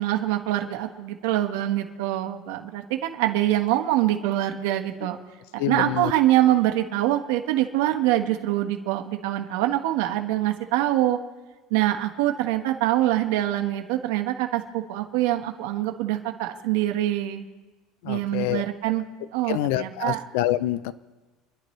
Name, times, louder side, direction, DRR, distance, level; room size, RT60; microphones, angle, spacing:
voice 1, 0.0-5.2 5.5-11.2 11.7-17.5 18.0-19.0 19.3-20.3, right 14 dB, 85° right, 4 dB, 1.5 m, -24 dB
voice 2, 5.6-6.1 18.0-18.6 19.5-20.9, left 13 dB, 75° left, 16 dB, 0.6 m, -26 dB
28.5 x 11.5 x 3.3 m, 1.2 s
cardioid pair, 155°, 0 cm